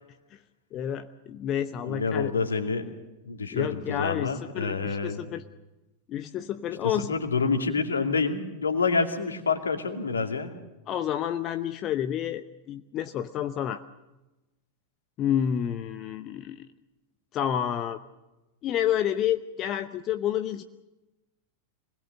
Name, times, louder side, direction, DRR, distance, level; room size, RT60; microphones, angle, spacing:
voice 1, 0.7-2.3 3.5-5.4 6.1-7.2 10.9-13.8 15.2-16.7 17.3-18.0 18.6-20.6, left 10 dB, 35° left, 10 dB, 0.9 m, -29 dB
voice 2, 1.8-2.9 3.2-5.3 6.8-10.5, left 4 dB, 75° left, 5 dB, 2.5 m, -27 dB
26.0 x 20.5 x 6.7 m, 1.0 s
figure-of-eight pair, 90°, 0 cm